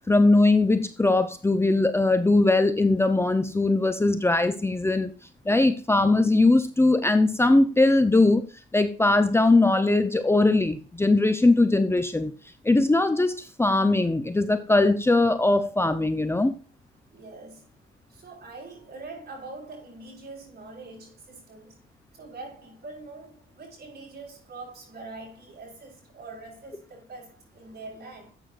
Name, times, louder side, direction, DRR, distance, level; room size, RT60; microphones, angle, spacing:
voice 1, 0.1-5.1 5.5-8.5 8.7-12.3 12.6-16.5, left 2 dB, 10° left, 0.7 m, -20 dB
voice 2, 17.1-17.7 18.1-21.8 22.1-28.3, right 3 dB, 55° right, 5.7 m, -43 dB
12.0 x 8.6 x 2.5 m
cardioid pair, 90°, 20 cm